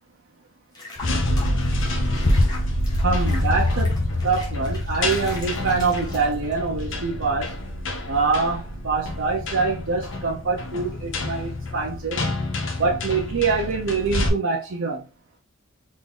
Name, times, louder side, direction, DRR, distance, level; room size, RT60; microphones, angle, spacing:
Water / Bathtub (filling or washing), 0.7-6.7, left 2 dB, 20° left, 1.0 m, -40 dB
sound 1, 1.0-14.3, left 1 dB, 60° left, 0.7 m, -26 dB
voice 1, 3.0-3.9 4.2-7.5 8.1-12.2 12.8-15.0, right 4 dB, 70° right, 0.7 m, -24 dB
3.7 x 2.7 x 3.6 m
head